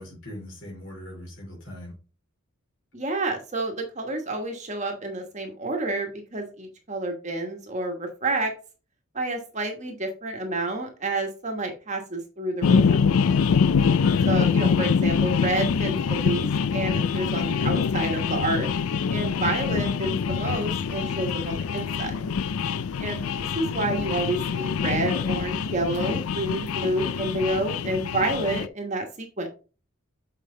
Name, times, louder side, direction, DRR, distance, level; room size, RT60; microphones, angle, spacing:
voice 1, 0.0-1.9 14.0-14.4 19.6-19.8, left 1 dB, 55° left, -1 dB, 4.4 m, -40 dB
voice 2, 2.9-8.5 9.1-13.0 14.2-18.7 19.1-22.3 23.0-29.5, right 2 dB, 30° right, 3 dB, 1.3 m, -29 dB
sound 1, 12.6-28.7, left 6 dB, 75° left, 0.4 m, -25 dB
7.4 x 4.9 x 3.8 m, 0.34 s
head